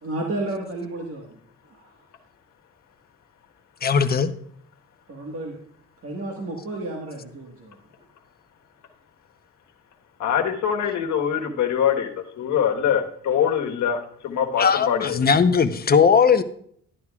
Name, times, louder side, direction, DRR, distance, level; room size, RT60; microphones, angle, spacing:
voice 1, 0.0-1.4 1.7-1.9 5.1-5.6 6.0-7.8, right 2 dB, 50° right, 1.6 m, -32 dB
voice 2, 3.8-4.3 14.6-16.4, left 6 dB, 30° left, 0.8 m, -18 dB
voice 3, 10.2-12.1 12.4-15.2, left 8 dB, 70° left, 1.4 m, -23 dB
11.5 x 11.0 x 2.4 m
cardioid pair, 90°, 30 cm